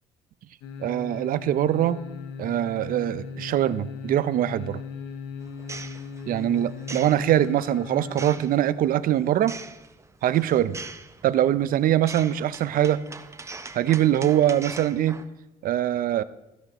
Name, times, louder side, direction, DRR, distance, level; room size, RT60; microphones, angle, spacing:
sound 1, 0.6-8.5 8.8-8.9, left 5 dB, 85° left, 1.0 m, -38 dB
voice 1, 0.8-2.0 2.4-4.8 6.3-9.5 10.2-10.8 11.2-13.0 13.7-15.2 15.6-16.2, right 12 dB, 55° right, 15 dB, 0.5 m, -23 dB
sound 2, 5.4-15.2, right 3 dB, 15° right, 0.7 m, -43 dB
14.5 x 11.5 x 3.0 m, 0.97 s
cardioid pair, 110°, 17 cm